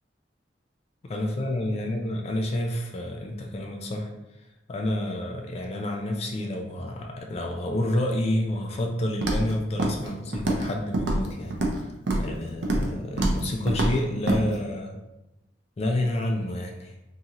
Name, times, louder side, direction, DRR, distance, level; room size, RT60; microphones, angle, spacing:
voice 1, 1.0-4.1 4.7-11.9 12.2-15.0 15.8-16.9, left 1 dB, 35° left, 2 dB, 0.3 m, -29 dB
Walk footsteps, 9.2-9.5 9.8-10.1 10.3-10.7 10.9-11.8 12.1-12.3 12.6-12.9 13.2-13.4 13.7-13.9 14.3-14.4, right 2 dB, 80° right, 0.5 m, -25 dB
2.7 x 2.4 x 2.9 m, 0.95 s
head